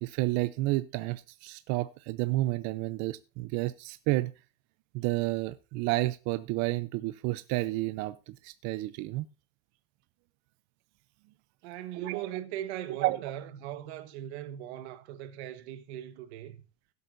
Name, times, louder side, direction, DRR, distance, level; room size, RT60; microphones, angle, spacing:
voice 1, 0.0-4.3 4.9-9.3 11.9-12.2 13.0-13.2, right 19 dB, 60° right, 0.6 m, -30 dB
voice 2, 11.6-16.6, right 12 dB, 90° right, 1.4 m, -39 dB
17.0 x 8.3 x 2.6 m
cardioid pair, 145°, 32 cm